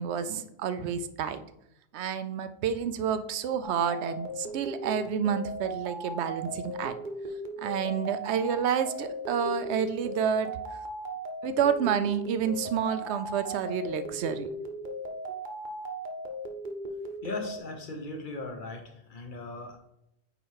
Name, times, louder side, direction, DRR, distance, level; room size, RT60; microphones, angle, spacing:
voice 1, 0.0-1.4 1.9-6.9 7.6-10.5 11.4-14.5, right 7 dB, 85° right, 12 dB, 0.9 m, -29 dB
sound 1, 3.6-17.6, right 1 dB, 50° right, 0.9 m, -37 dB
voice 2, 17.2-19.8, left 2 dB, 50° left, 4 dB, 1.2 m, -38 dB
8.8 x 3.1 x 4.7 m, 0.81 s
omnidirectional pair, 1.1 m